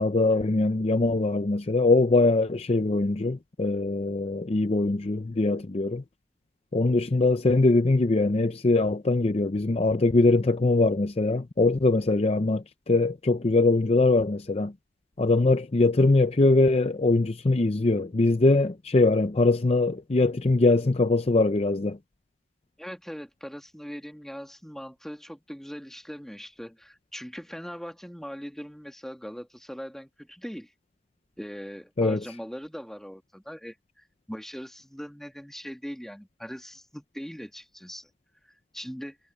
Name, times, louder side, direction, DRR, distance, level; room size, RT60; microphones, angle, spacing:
voice 1, 0.0-6.0 6.7-14.7 15.2-22.0 32.0-32.2, left 2 dB, 35° left, 0.5 m, -22 dB
voice 2, 22.8-30.7 31.4-38.1 38.4-39.2, equal, ahead, 2.1 m, -40 dB
head